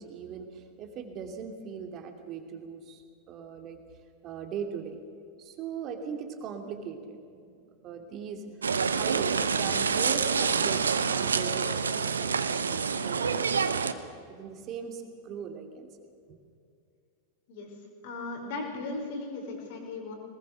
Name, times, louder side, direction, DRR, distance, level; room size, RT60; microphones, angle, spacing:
voice 1, 0.0-3.8 4.2-5.0 5.4-13.8 14.3-15.9 16.3-16.4, right 6 dB, 35° right, 5 dB, 2.8 m, -40 dB
sound 1, 8.6-13.9, right 5 dB, 70° right, 1.0 m, -27 dB
voice 2, 18.0-20.1, left 3 dB, 50° left, 2 dB, 5.1 m, -37 dB
22.5 x 20.0 x 6.6 m, 2.3 s
figure-of-eight pair, 90°, 0 cm